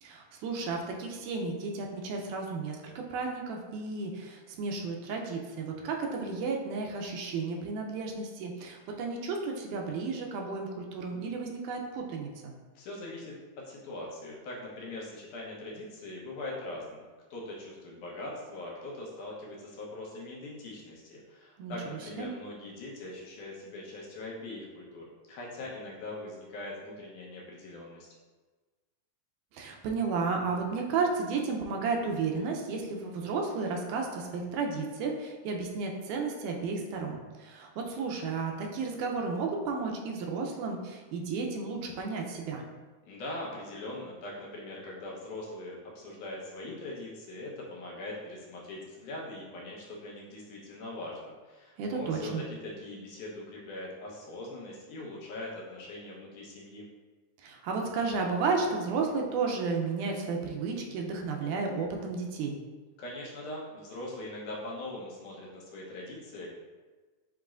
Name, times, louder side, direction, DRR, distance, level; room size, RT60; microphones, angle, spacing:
voice 1, 0.0-12.5 21.6-22.3 29.5-42.6 51.8-52.4 57.4-62.6, right 4 dB, 90° right, 1 dB, 2.1 m, -33 dB
voice 2, 12.8-28.1 43.0-56.8 63.0-66.5, left 2 dB, 80° left, -4 dB, 2.4 m, -41 dB
7.1 x 3.1 x 2.4 m, 1.3 s
omnidirectional pair, 3.5 m